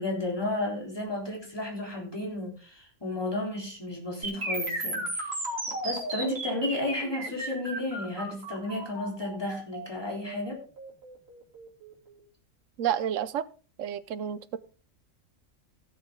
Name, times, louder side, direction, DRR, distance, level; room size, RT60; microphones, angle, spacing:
voice 1, 0.0-5.4 5.8-10.6, left 2 dB, 15° left, -1 dB, 3.6 m, -33 dB
sound 1, 4.2-12.2, right 1 dB, 45° right, 3.3 m, -35 dB
voice 2, 12.8-13.5 13.8-14.6, right 9 dB, 65° right, 15 dB, 1.0 m, -30 dB
17.0 x 6.8 x 3.6 m, 0.36 s
omnidirectional pair, 1.5 m